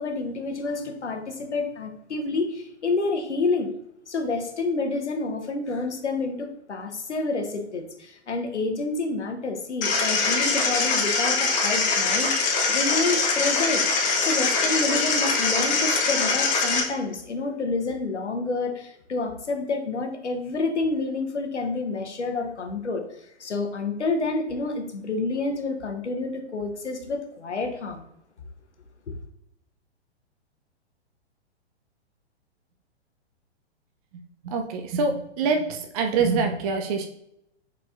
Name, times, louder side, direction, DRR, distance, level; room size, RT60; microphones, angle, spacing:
voice 1, 0.0-3.7 4.1-13.8 14.2-28.0, left 3 dB, 85° left, 5 dB, 0.8 m, -29 dB
sound 1, 9.8-16.8, left 4 dB, 20° left, 0.8 m, -23 dB
voice 2, 34.4-37.1, right 4 dB, 35° right, 4 dB, 0.4 m, -25 dB
4.3 x 4.2 x 2.4 m, 0.80 s
figure-of-eight pair, 115°, 34 cm